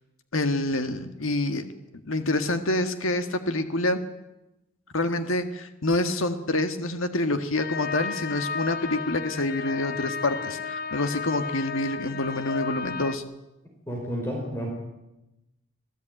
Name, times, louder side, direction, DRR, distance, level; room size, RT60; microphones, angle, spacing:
voice 1, 0.3-1.7 2.1-4.0 4.9-13.2, left 2 dB, 80° left, 8 dB, 1.8 m, -27 dB
sound 1, 7.6-13.1, left 6 dB, 50° left, 1.2 m, -33 dB
voice 2, 13.9-14.7, equal, 10° left, 0 dB, 4.9 m, -31 dB
26.5 x 17.0 x 9.1 m, 0.95 s
head